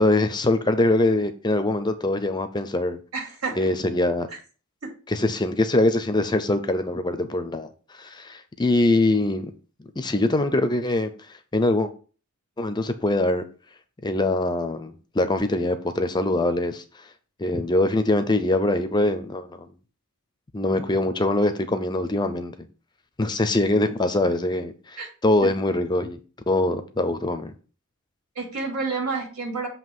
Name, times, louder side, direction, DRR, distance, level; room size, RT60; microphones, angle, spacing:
voice 1, 0.0-3.0 3.6-4.3 5.1-7.7 8.0-9.5 10.0-11.1 11.5-11.9 12.6-13.4 14.0-16.8 17.4-19.7 20.5-22.7 23.2-26.2 26.5-27.5, left 2 dB, 20° left, 0.5 m, -23 dB
voice 2, 3.1-3.7 25.0-25.1 25.4-25.5 28.3-29.7, right 4 dB, 80° right, 2.8 m, -29 dB
7.4 x 2.9 x 6.0 m
head